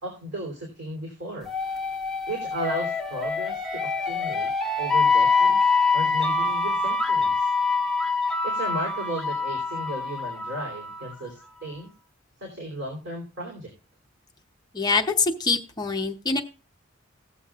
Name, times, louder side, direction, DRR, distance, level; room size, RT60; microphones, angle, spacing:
voice 1, 0.0-1.5 2.3-4.5 4.8-5.7 5.9-7.5 8.4-11.9 12.4-13.7, right 1 dB, 60° right, -1 dB, 3.2 m, -35 dB
sound 1, 1.5-11.1, left 4 dB, ahead, 1.4 m, -25 dB
voice 2, 14.7-16.4, left 4 dB, 20° left, 4 dB, 0.8 m, -24 dB
19.0 x 7.1 x 2.4 m, 0.35 s
head